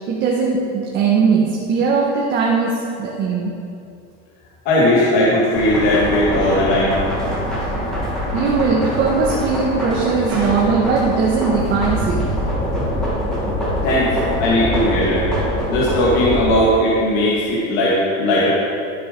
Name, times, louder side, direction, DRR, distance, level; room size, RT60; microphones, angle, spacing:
voice 1, 0.1-3.5 8.3-12.3, right 5 dB, 35° right, -3 dB, 1.6 m, -19 dB
voice 2, 4.6-7.0 12.6-12.7 13.8-14.1 14.4-15.2 15.7-18.5, left 1 dB, 60° left, -7 dB, 2.4 m, -17 dB
sound 1, 5.5-16.5, equal, ahead, 2.8 m, -23 dB
14.0 x 7.7 x 5.4 m, 2.6 s
cardioid pair, 170°, 30 cm